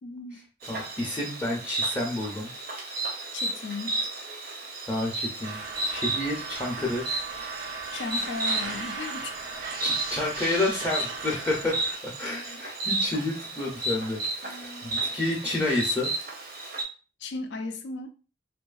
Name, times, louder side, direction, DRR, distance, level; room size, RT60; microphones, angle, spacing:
voice 1, 0.0-0.4 3.3-4.0 7.9-9.4 12.2-12.6 13.0-13.1 14.4-15.1 17.2-18.1, left 3 dB, 80° left, 7 dB, 0.4 m, -36 dB
Insect, 0.6-16.8, right 2 dB, 55° right, 0.6 m, -33 dB
voice 2, 0.7-2.5 4.9-7.0 9.8-14.5 14.8-16.1, left 2 dB, 15° left, -3 dB, 0.5 m, -30 dB
sound 1, 5.4-12.0, right 4 dB, 85° right, 0.9 m, -38 dB
2.6 x 2.3 x 2.3 m, 0.35 s
head